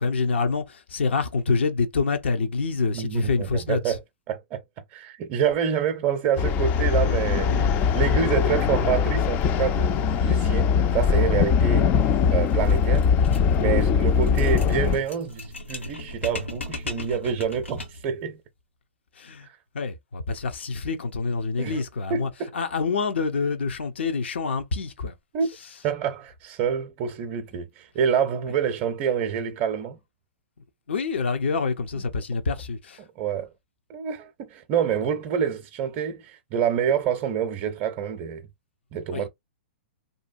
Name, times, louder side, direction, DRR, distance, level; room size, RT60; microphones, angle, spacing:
voice 1, 0.0-3.9 19.2-19.5 19.7-25.1 30.9-33.0 39.1-39.2, left 4 dB, 70° left, 0.7 m, -26 dB
voice 2, 2.9-4.6 4.9-12.0 12.3-13.1 13.6-18.4 19.4-19.6 21.6-21.8 22.1-22.5 25.3-25.5 25.8-30.0 31.9-32.1 33.0-33.5 33.9-38.5 38.9-39.3, right 8 dB, 35° right, 0.5 m, -27 dB
sound 1, 6.4-15.0, left 6 dB, 30° left, 0.3 m, -21 dB
sound 2, 12.4-18.1, left 2 dB, 90° left, 1.0 m, -37 dB
2.7 x 2.2 x 2.6 m
hypercardioid pair, 120°, 6 cm